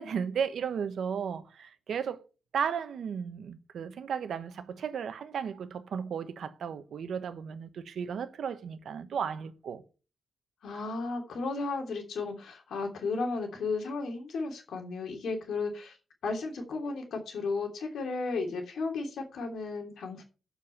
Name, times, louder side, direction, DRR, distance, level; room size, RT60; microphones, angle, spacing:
voice 1, 0.0-2.2 2.5-9.8, right 7 dB, 65° right, 1.0 m, -34 dB
voice 2, 10.6-16.0 16.2-20.2, left 3 dB, 75° left, 2.9 m, -34 dB
7.4 x 7.0 x 6.9 m
wide cardioid pair, 170°, 0 cm